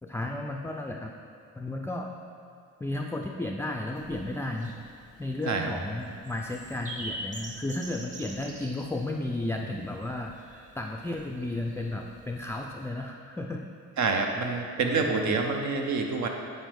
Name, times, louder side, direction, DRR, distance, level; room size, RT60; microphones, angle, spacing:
voice 1, 0.0-1.1 1.6-2.1 2.8-4.8 5.2-13.6 14.8-15.4, left 2 dB, 10° left, 1 dB, 0.3 m, -33 dB
sound 1, 3.9-12.9, right 1 dB, 25° right, 1.0 m, -45 dB
voice 2, 14.0-16.3, right 4 dB, 70° right, 3 dB, 0.9 m, -27 dB
9.1 x 4.5 x 3.5 m, 2.5 s
cardioid pair, 90°, 30 cm